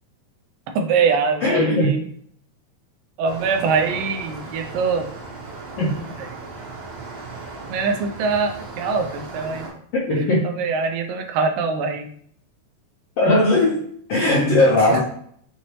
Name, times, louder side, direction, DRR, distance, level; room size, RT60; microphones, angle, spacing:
voice 1, 0.8-2.0 3.2-5.1 6.2-6.3 7.7-9.7 10.1-12.1 14.9-15.0, right 5 dB, 85° right, 5 dB, 2.3 m, -23 dB
voice 2, 1.4-1.9 5.8-5.9 10.1-10.5 13.2-15.0, left 2 dB, 75° left, -5 dB, 1.4 m, -18 dB
sound 1, 3.2-9.7, right 3 dB, 55° right, 2.1 m, -36 dB
6.2 x 2.7 x 3.1 m, 0.62 s
omnidirectional pair, 4.0 m